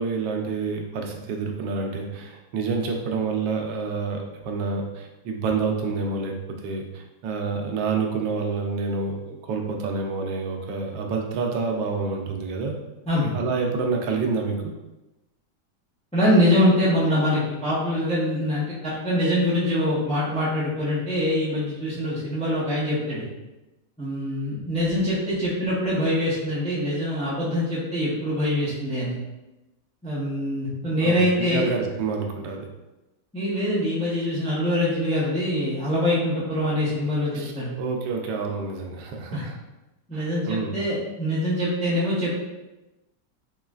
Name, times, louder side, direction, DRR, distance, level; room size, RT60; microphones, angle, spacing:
voice 1, 0.0-6.3 6.6-12.8 13.3-14.6 31.0-32.6 37.3-37.5 37.8-39.5 40.1-40.8, right 4 dB, 90° right, 2 dB, 1.3 m, -28 dB
voice 2, 13.1-13.4 16.1-23.3 24.0-29.2 30.0-31.7 33.3-37.7 39.3-39.4 40.1-42.4, left 1 dB, 10° left, -8 dB, 0.4 m, -24 dB
3.9 x 3.1 x 2.4 m, 1.0 s
omnidirectional pair, 1.9 m